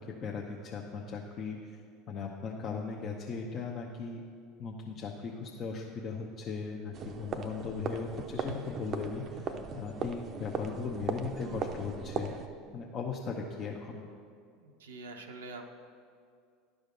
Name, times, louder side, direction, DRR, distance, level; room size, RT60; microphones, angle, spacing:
voice 1, 0.1-1.8 2.1-4.2 4.6-12.3 12.7-14.0, left 5 dB, 40° left, -1 dB, 0.7 m, -38 dB
sound 1, 6.9-12.5, right 5 dB, 40° right, 0.6 m, -38 dB
voice 2, 14.6-15.7, right 3 dB, 80° right, 3 dB, 0.7 m, -45 dB
11.0 x 5.0 x 5.3 m, 2.2 s
hypercardioid pair, 75°, 0 cm